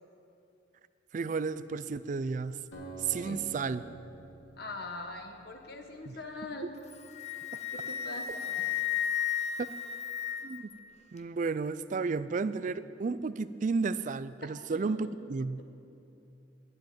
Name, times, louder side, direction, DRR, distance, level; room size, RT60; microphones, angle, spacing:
voice 1, 1.1-2.6 3.0-3.8 6.1-6.2 10.4-10.7 11.1-15.6, right 4 dB, 40° right, 15 dB, 0.3 m, -32 dB
Acoustic guitar, 2.7-6.3, right 3 dB, 75° left, 2.5 m, -48 dB
voice 2, 3.1-3.4 4.6-6.7 7.7-8.8 14.7-15.0, left 2 dB, 55° left, 4 dB, 1.3 m, -42 dB
Wind instrument woodwind instrument, 6.8-10.7, left 9 dB, 35° left, 0.6 m, -34 dB
10.5 x 7.8 x 9.1 m, 2.8 s
head